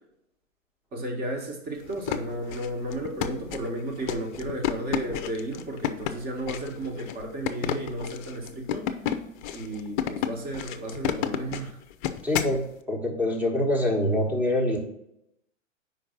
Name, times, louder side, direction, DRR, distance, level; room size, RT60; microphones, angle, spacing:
voice 1, 0.9-8.9 9.5-11.8, right 1 dB, 25° right, 2 dB, 1.6 m, -33 dB
sound 1, 1.8-12.6, left 10 dB, 40° left, 0.6 m, -31 dB
voice 2, 12.2-14.8, left 1 dB, 5° right, 1 dB, 1.3 m, -25 dB
5.2 x 4.5 x 5.9 m, 0.82 s
figure-of-eight pair, 105°, 39 cm